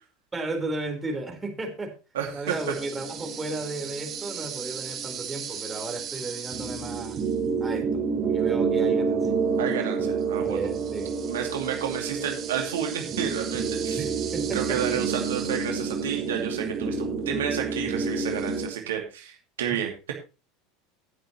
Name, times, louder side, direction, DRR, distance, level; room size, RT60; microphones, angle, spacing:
voice 1, 0.3-1.9 2.3-7.2 7.6-9.3 10.4-11.1 14.0-15.0 19.7-19.8, right 2 dB, 20° right, 3 dB, 4.0 m, -34 dB
voice 2, 2.1-2.5 9.6-10.7 11.3-14.0 14.5-20.1, right 9 dB, 70° right, 2 dB, 2.5 m, -31 dB
sound 1, 2.5-18.7, right 5 dB, 40° right, 3.4 m, -29 dB
18.5 x 7.6 x 3.0 m, 0.31 s
figure-of-eight pair, 80°, 0 cm